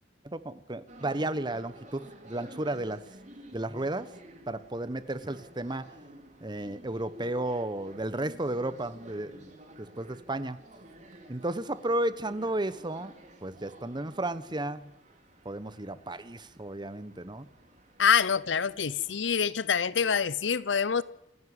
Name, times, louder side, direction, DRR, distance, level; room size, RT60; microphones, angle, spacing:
voice 1, 0.2-3.0 3.5-4.1 4.5-5.9 6.4-9.5 9.8-10.6 11.3-13.1 13.4-14.9 15.4-17.5, right 1 dB, 25° right, 1.1 m, -33 dB
sound 1, 0.9-19.2, right 1 dB, 40° right, 3.4 m, -52 dB
voice 2, 18.0-21.0, left 6 dB, 85° left, 0.8 m, -26 dB
28.0 x 11.0 x 9.6 m
head